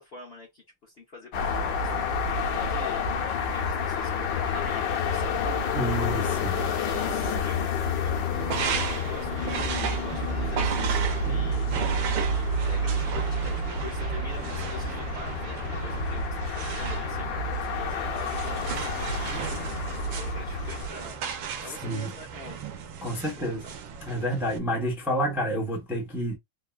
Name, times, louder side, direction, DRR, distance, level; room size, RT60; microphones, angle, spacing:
voice 1, 0.0-6.0 6.7-7.7 8.0-11.7 12.4-19.4 20.1-21.2 21.6-22.6 23.2-23.8, left 3 dB, 50° left, 0.7 m, -45 dB
sound 1, 1.3-20.9, left 2 dB, 85° left, 1.4 m, -29 dB
voice 2, 5.7-6.6 21.6-22.1 23.0-23.6 24.0-26.4, equal, 5° right, 0.4 m, -29 dB
sound 2, 8.3-24.6, right 8 dB, 85° right, 1.3 m, -35 dB
3.5 x 2.2 x 2.3 m
omnidirectional pair, 2.0 m